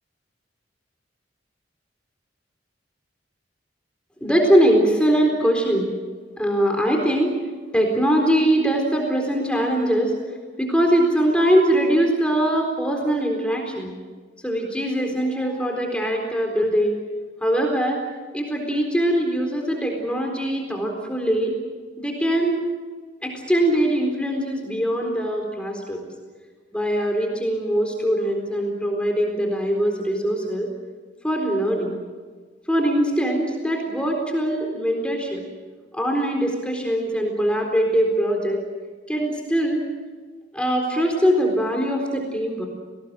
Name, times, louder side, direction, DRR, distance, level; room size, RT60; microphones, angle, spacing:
voice 1, 4.2-5.9 6.4-7.3 7.7-10.2 10.6-13.9 14.4-17.0 17.4-18.0 18.3-21.5 22.0-22.6 23.2-26.0 26.7-30.7 31.2-32.0 32.7-35.4 35.9-38.6 39.1-39.8 40.5-42.7, equal, 5° left, 1 dB, 4.1 m, -22 dB
30.0 x 19.5 x 7.7 m, 1.4 s
head